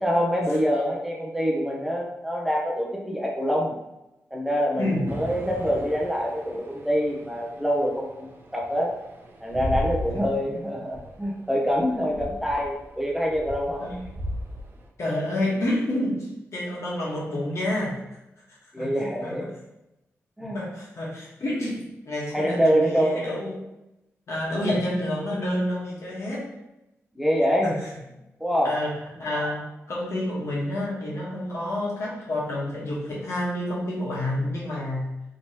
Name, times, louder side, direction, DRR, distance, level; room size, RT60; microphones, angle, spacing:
voice 1, 0.0-3.8 4.3-8.9 9.4-13.9 18.7-19.5 20.4-20.6 22.3-23.2 27.2-27.7 28.4-28.8, equal, 5° right, -2 dB, 0.7 m, -25 dB
voice 2, 4.7-5.1 10.1-10.2 13.8-14.0 15.0-18.0 18.8-18.9 19.2-19.4 20.4-23.6 24.3-26.5 27.6-27.8 28.6-35.1, left 1 dB, 65° left, -5 dB, 1.1 m, -29 dB
sound 1, 5.1-14.9, equal, 45° right, 0.6 m, -37 dB
3.1 x 3.0 x 2.8 m, 0.92 s
cardioid pair, 70°, 5 cm